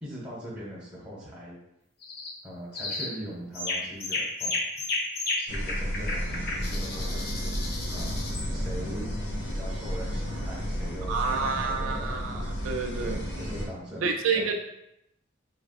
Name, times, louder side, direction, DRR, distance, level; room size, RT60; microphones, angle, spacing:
voice 1, 0.0-1.6 2.4-4.5 5.4-9.1 9.4-12.3 13.0-14.1 14.3-14.5, equal, 5° right, -7 dB, 1.4 m, -41 dB
sound 1, 2.0-2.4 2.7-3.2 3.5-8.5, left 2 dB, 50° left, 0.7 m, -33 dB
sound 2, 5.5-13.7, equal, 70° left, 1.0 m, -32 dB
voice 2, 11.1-13.2 14.0-14.5, right 5 dB, 80° right, 2 dB, 0.4 m, -29 dB
4.7 x 3.4 x 2.4 m, 0.83 s
head